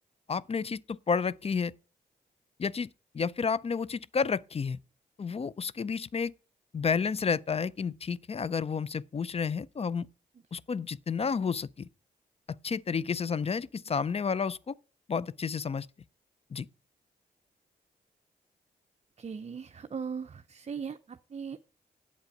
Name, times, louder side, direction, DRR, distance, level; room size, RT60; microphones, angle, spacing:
voice 1, 0.3-1.7 2.6-2.9 3.1-4.8 5.2-6.3 6.7-10.1 10.5-11.9 12.6-14.7 15.1-15.9 16.5-16.7, left 5 dB, 35° left, 0.4 m, -31 dB
voice 2, 19.2-21.6, right 6 dB, 35° right, 0.5 m, -39 dB
8.0 x 7.8 x 5.3 m
supercardioid pair, 40°, 18 cm